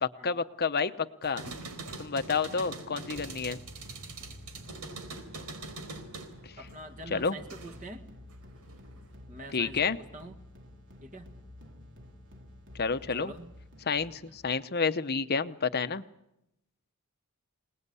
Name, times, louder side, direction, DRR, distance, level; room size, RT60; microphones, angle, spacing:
voice 1, 0.0-1.4 2.0-3.6 7.1-7.4 9.5-10.0 12.8-13.3 13.8-16.0, left 5 dB, 45° left, 11 dB, 0.9 m, -29 dB
sound 1, 1.2-7.9 8.3-9.1, right 3 dB, 90° right, 4.3 m, -43 dB
sound 2, 3.2-14.7, left 1 dB, 55° right, 3.4 m, -51 dB
voice 2, 6.6-8.1 9.3-10.4 11.0-11.3 13.1-13.5 14.2-14.4, right 1 dB, 35° right, 7 dB, 1.9 m, -45 dB
26.5 x 19.5 x 8.4 m, 0.86 s
head